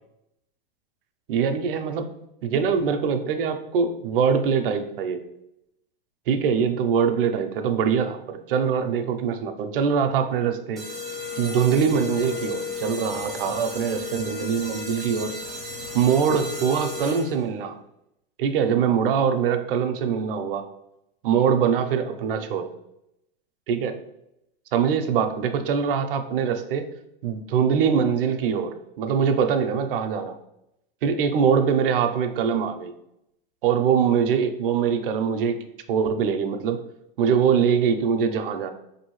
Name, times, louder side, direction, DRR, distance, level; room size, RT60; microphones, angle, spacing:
voice 1, 1.3-2.1 2.4-5.2 6.3-10.8 11.4-15.3 15.9-17.8 18.4-20.6 21.2-22.7 23.7-24.0 24.7-26.9 27.2-30.3 31.0-32.9 33.6-35.6 35.9-36.8 37.2-38.7, right 7 dB, 60° right, 8 dB, 0.5 m, -23 dB
sound 1, 10.8-17.5, left 4 dB, ahead, 0.5 m, -34 dB
4.8 x 2.7 x 3.0 m, 0.82 s
supercardioid pair, 175°, 31 cm